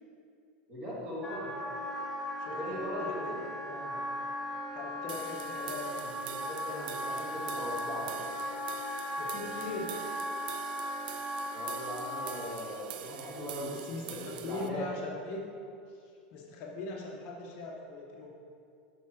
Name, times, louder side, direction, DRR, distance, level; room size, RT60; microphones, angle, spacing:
voice 1, 0.7-1.5 2.5-3.4 6.2-8.3 11.5-13.8 14.4-14.9, equal, 25° right, -6 dB, 1.9 m, -39 dB
Wind instrument woodwind instrument, 1.2-12.5, left 1 dB, ahead, 0.7 m, -37 dB
voice 2, 2.4-3.1 3.5-4.0 4.7-6.2 9.2-10.0 13.7-15.4 15.9-16.0 16.3-18.3, left 3 dB, 40° left, -1 dB, 0.9 m, -40 dB
sound 1, 5.1-14.7, right 9 dB, 70° right, 0.4 m, -45 dB
7.1 x 6.0 x 4.5 m, 2.4 s
supercardioid pair, 165°, 5 cm